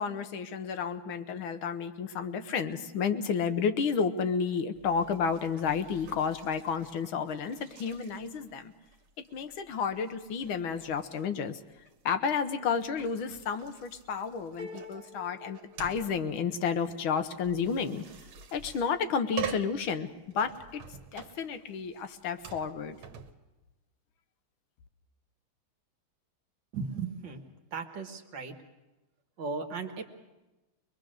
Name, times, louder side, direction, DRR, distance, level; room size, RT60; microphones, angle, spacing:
voice 1, 0.0-8.7 9.2-11.6 12.1-18.0 18.5-20.1 20.3-20.8 21.1-23.0, left 6 dB, 80° left, 9 dB, 1.8 m, -31 dB
sound 1, 4.7-23.3, right 7 dB, 80° right, 2.0 m, -46 dB
sound 2, 14.6-16.6, left 3 dB, 55° left, 6.9 m, -48 dB
voice 2, 26.7-27.4 27.7-28.5 29.4-30.0, right 4 dB, 60° right, 6 dB, 2.1 m, -36 dB
23.0 x 22.0 x 6.4 m, 1.1 s
omnidirectional pair, 2.3 m